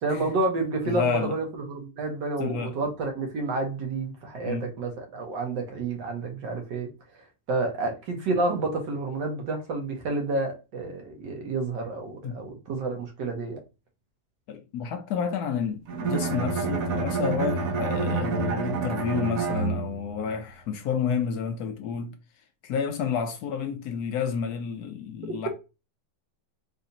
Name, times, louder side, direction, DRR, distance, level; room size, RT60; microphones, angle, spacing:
voice 1, 0.0-6.9 7.5-13.6, right 3 dB, 80° right, 1.6 m, -29 dB
voice 2, 0.8-1.4 2.4-2.8 4.5-4.7 12.2-12.4 14.5-22.1 22.6-25.5, left 6 dB, 70° left, 1.0 m, -30 dB
Bowed string instrument, 15.9-20.2, right 4 dB, 60° right, 1.0 m, -28 dB
4.0 x 2.7 x 2.6 m
omnidirectional pair, 1.9 m